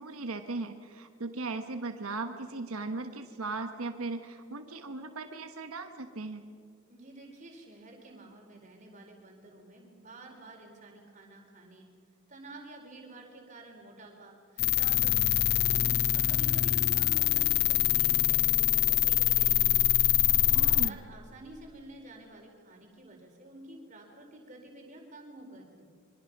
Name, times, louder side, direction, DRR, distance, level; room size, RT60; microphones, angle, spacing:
voice 1, 0.0-6.5 20.5-21.0, right 3 dB, 90° right, 7 dB, 1.3 m, -38 dB
voice 2, 6.9-11.9 12.3-15.8 16.1-19.7 20.1-25.9, right 2 dB, 35° right, 1 dB, 4.3 m, -50 dB
sound 1, 14.6-20.9, left 13 dB, 50° left, 0.5 m, -25 dB
26.0 x 23.5 x 6.0 m, 2.1 s
head